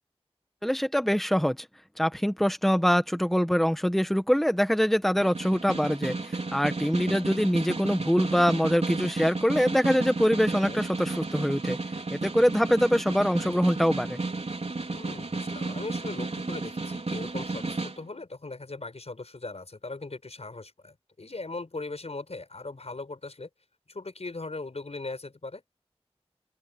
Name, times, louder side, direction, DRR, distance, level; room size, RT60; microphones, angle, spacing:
voice 1, 0.6-1.6 2.0-11.8 12.1-14.2, equal, ahead, 1.6 m, -24 dB
Snare drum, 5.2-18.0, right 3 dB, 85° right, 4.2 m, -32 dB
voice 2, 14.9-23.5 23.9-25.6, left 3 dB, 80° left, 6.2 m, -39 dB
open air
wide cardioid pair, 45°, 11 cm